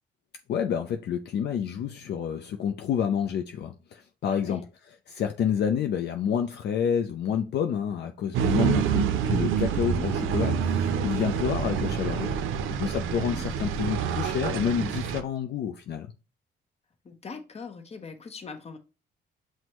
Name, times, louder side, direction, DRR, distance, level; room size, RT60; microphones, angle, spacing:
voice 1, 0.5-12.3 12.8-16.1, left 8 dB, 60° left, 0.4 m, -29 dB
voice 2, 4.3-4.6 9.7-10.1 13.1-13.7 17.0-18.8, left 4 dB, 30° left, 0.8 m, -42 dB
sound 1, 8.3-15.2, right 8 dB, 85° right, 0.5 m, -27 dB
6.1 x 2.1 x 2.9 m
cardioid pair, 90°, 20 cm